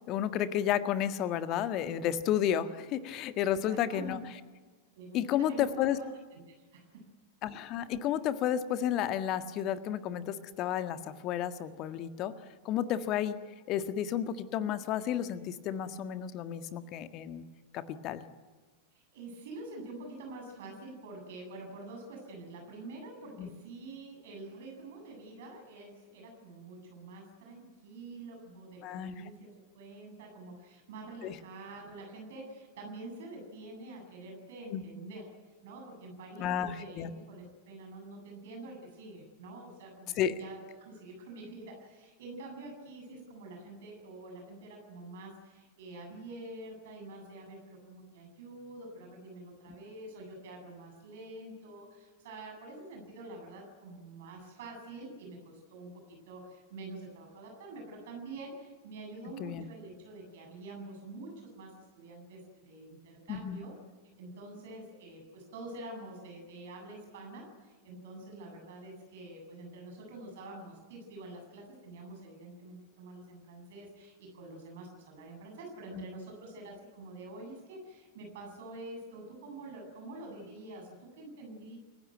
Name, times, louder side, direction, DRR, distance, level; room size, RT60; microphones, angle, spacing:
voice 1, 0.1-4.2 5.1-6.0 7.4-12.3 12.6-13.3 13.7-17.4 17.7-18.2 23.4-23.5 28.8-29.1 31.2-31.3 34.7-34.8 36.4-37.1 40.2-40.4 59.4-59.6 63.3-63.6 75.9-76.0, left 10 dB, 40° left, 10 dB, 1.7 m, -32 dB
voice 2, 3.4-4.2 4.9-7.1 18.9-35.3 35.6-63.7 64.2-81.8, right 2 dB, 55° right, 2 dB, 7.9 m, -47 dB
28.5 x 16.5 x 9.3 m, 1.4 s
figure-of-eight pair, 90°, 0 cm